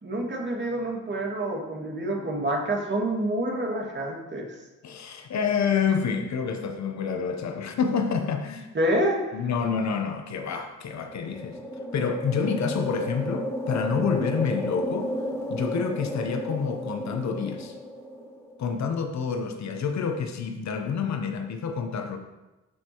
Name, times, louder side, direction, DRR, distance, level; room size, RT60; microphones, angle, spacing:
voice 1, 0.0-4.5 8.7-9.4, right 1 dB, 35° right, 0 dB, 2.0 m, -27 dB
voice 2, 4.8-8.7 9.3-11.6 11.9-15.1 15.5-17.7 18.6-22.2, left 6 dB, 60° left, 6 dB, 0.8 m, -28 dB
sound 1, 10.9-18.6, equal, 10° left, 1.5 m, -33 dB
13.0 x 4.4 x 3.0 m, 1.1 s
cardioid pair, 70°, 31 cm